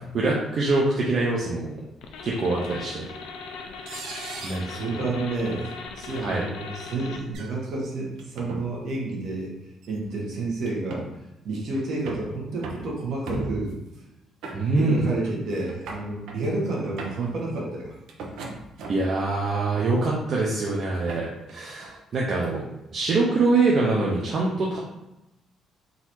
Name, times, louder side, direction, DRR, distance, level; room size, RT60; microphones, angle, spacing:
voice 1, 0.1-1.8 2.2-3.1 3.9-4.0 4.4-4.6 4.9-5.0 6.2-6.4 14.5-15.2 18.9-22.6 22.9-24.8, right 3 dB, 40° right, -4 dB, 0.7 m, -24 dB
sound 1, 2.0-7.3, left 4 dB, 80° left, 0.5 m, -39 dB
sound 2, 2.6-2.7 3.9-4.7 5.6-5.7 6.1-6.2 7.3-7.5 8.2-8.6 9.8-9.9 10.7-11.1 11.7-12.3 12.6-12.9 13.3-13.8 14.4-15.0 15.2-15.4 15.6-16.4 16.8-17.3 18.1-19.1 19.7-20.1 20.7-22.0, right 3 dB, 80° right, 0.8 m, -37 dB
voice 2, 4.6-5.6 6.0-9.5 9.9-11.0 11.4-13.7 14.7-18.0, right 2 dB, 55° right, -3 dB, 1.3 m, -30 dB
3.9 x 2.7 x 4.5 m, 0.93 s
cardioid pair, 165°, 0 cm